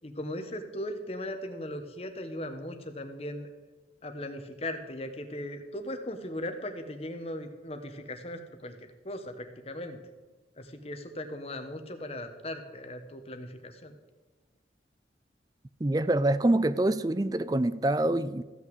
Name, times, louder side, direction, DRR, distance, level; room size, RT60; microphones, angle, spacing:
voice 1, 0.0-3.5 4.0-8.7 9.0-10.0 10.6-13.9, left 1 dB, 35° left, 1.2 m, -38 dB
voice 2, 15.8-18.4, right 1 dB, 20° right, 0.4 m, -25 dB
15.0 x 6.1 x 7.9 m
head